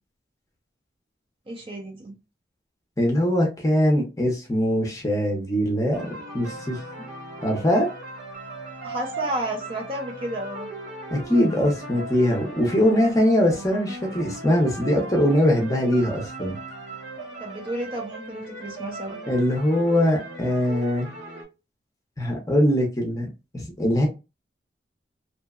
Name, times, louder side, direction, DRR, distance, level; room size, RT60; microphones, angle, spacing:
voice 1, 1.5-2.2 8.8-10.7 17.4-19.2, right 1 dB, 30° right, 0.5 m, -32 dB
voice 2, 3.0-6.8 7.4-7.9 11.1-16.6 19.3-21.1 22.2-23.3 23.5-24.1, equal, 20° left, 0.6 m, -22 dB
sound 1, 5.9-21.4, right 2 dB, 75° right, 0.9 m, -38 dB
2.7 x 2.1 x 2.3 m
head